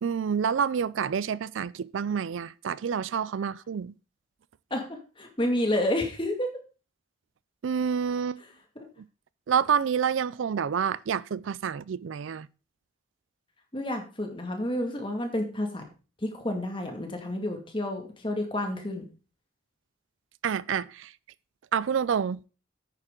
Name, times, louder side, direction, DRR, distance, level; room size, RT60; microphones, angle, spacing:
voice 1, 0.0-3.9 7.6-8.4 9.5-12.5 20.4-21.1 21.7-22.4, right 7 dB, 85° right, 0.4 m, -28 dB
voice 2, 4.7-6.5 13.7-15.9 16.2-19.0, left 1 dB, 25° left, 2.1 m, -30 dB
10.5 x 8.9 x 3.8 m
head